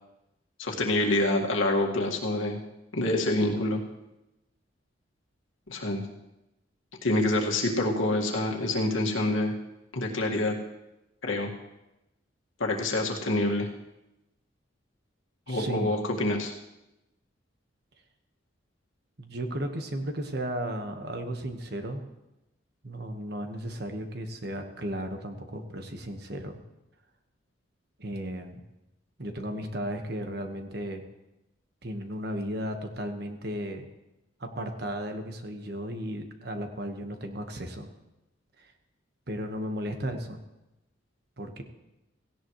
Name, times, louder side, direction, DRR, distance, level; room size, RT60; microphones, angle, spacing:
voice 1, 0.6-2.6 2.9-3.8 5.7-6.0 7.0-9.5 9.9-10.5 11.2-11.5 12.6-13.7 15.5-16.5, left 1 dB, 85° left, 1 dB, 1.9 m, -26 dB
voice 2, 15.5-15.9 19.2-22.0 22.8-26.6 28.0-28.6 29.2-31.0 31.8-33.9 34.4-37.9 38.6-38.7 39.3-40.4 41.4-41.6, equal, 55° right, 5 dB, 1.4 m, -35 dB
17.0 x 16.5 x 3.2 m, 0.94 s
head